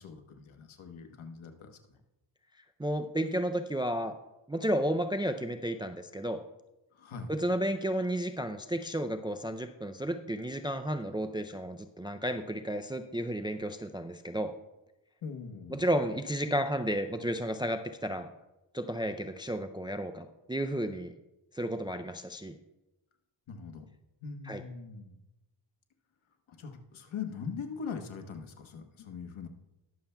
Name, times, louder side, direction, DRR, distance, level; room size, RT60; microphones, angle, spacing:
voice 1, 0.0-1.8 6.9-7.3 15.2-15.8 23.5-23.9 24.2-25.2 26.5-29.5, left 5 dB, 75° left, 5 dB, 1.3 m, -41 dB
voice 2, 2.8-4.1 4.5-6.4 7.3-14.5 15.7-18.3 18.7-21.1 21.5-22.5 24.5-24.6, equal, 10° right, 7 dB, 0.3 m, -32 dB
20.5 x 7.0 x 2.2 m, 0.97 s
cardioid pair, 100°, 48 cm